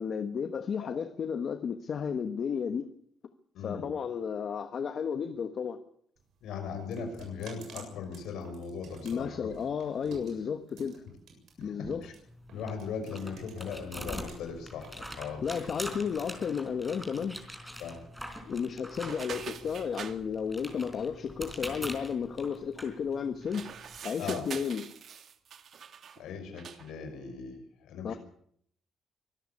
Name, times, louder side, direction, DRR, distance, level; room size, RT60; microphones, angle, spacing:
voice 1, 0.0-2.9 3.6-5.8 9.0-11.0 11.6-12.0 15.4-17.4 18.5-23.7 24.0-24.8 28.0-28.1, left 7 dB, 45° left, 1.2 m, -33 dB
voice 2, 3.5-3.9 6.4-9.5 11.6-12.1 12.5-15.8 17.8-18.0 24.2-24.4 26.2-28.2, left 6 dB, 90° left, 6.2 m, -39 dB
sound 1, 6.2-14.3 14.7-16.6, right 4 dB, 70° right, 7.4 m, -51 dB
sound 2, 12.3-24.0, equal, 5° right, 4.1 m, -44 dB
sound 3, 19.0-20.2 23.4-26.2 26.6-26.9, right 7 dB, 50° right, 1.8 m, -43 dB
24.5 x 13.0 x 8.5 m
cardioid pair, 150°, 0 cm